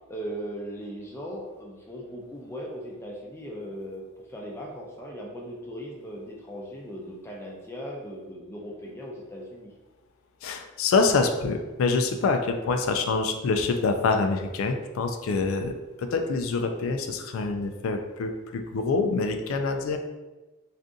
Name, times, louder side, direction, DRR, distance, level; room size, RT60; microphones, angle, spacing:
voice 1, 0.1-9.7, equal, 10° left, -2 dB, 0.4 m, -38 dB
voice 2, 10.4-20.0, left 4 dB, 80° left, 6 dB, 0.3 m, -26 dB
2.6 x 2.4 x 3.6 m, 1.2 s
head